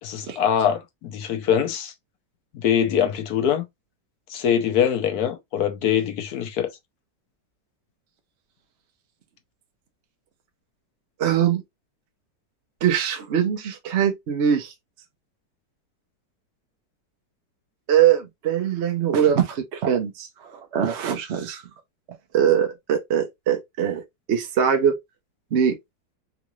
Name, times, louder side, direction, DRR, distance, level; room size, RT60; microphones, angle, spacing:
voice 1, 0.0-1.9 2.5-3.6 4.3-6.7, left 9 dB, 65° left, 1.1 m, -23 dB
voice 2, 11.2-11.6 12.8-14.7 17.9-21.6 22.3-24.0 24.3-24.9 25.5-25.8, right 9 dB, 60° right, 0.7 m, -22 dB
3.8 x 2.4 x 3.0 m
omnidirectional pair, 2.0 m